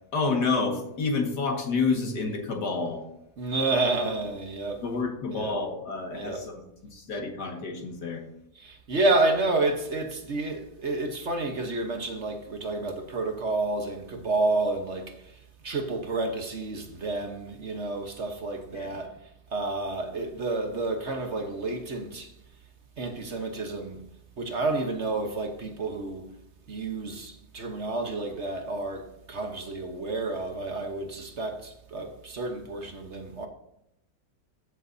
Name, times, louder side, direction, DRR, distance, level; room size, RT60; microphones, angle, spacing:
voice 1, 0.1-3.0 4.8-8.2 18.7-19.0, left 4 dB, 80° left, 2.4 m, -29 dB
voice 2, 3.4-4.8 5.3-5.5 6.1-6.4 8.6-15.1 15.6-19.1 19.5-22.3 23.0-24.0 24.4-26.3 26.7-33.5, right 2 dB, 45° right, 1.3 m, -30 dB
14.5 x 7.3 x 2.7 m
omnidirectional pair, 1.7 m